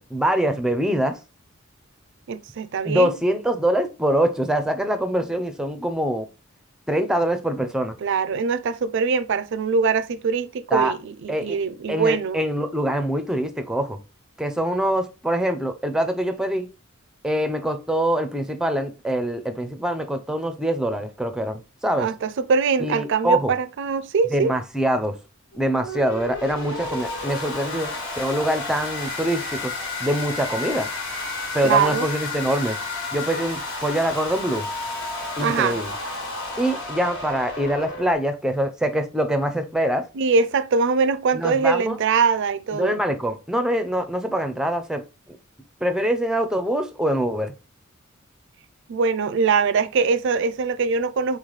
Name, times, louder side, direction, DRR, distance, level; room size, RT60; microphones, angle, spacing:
voice 1, 0.1-1.2 2.8-6.3 6.9-8.0 10.7-10.9 11.3-11.6 11.9-14.0 14.4-16.7 17.2-22.1 22.8-23.5 24.3-25.2 25.5-29.7 30.0-30.9 31.5-32.8 33.1-34.7 35.4-35.9 36.6-40.0 41.3-42.0 42.7-45.0 45.3-45.4 45.8-47.5, right 1 dB, 5° right, 0.5 m, -24 dB
voice 2, 2.3-3.2 8.0-12.4 22.0-24.5 31.6-32.1 35.4-35.8 40.1-43.0 48.9-51.4, right 5 dB, 60° right, 0.4 m, -22 dB
sound 1, 25.5-38.2, left 2 dB, 65° left, 1.5 m, -31 dB
3.8 x 3.2 x 3.9 m
head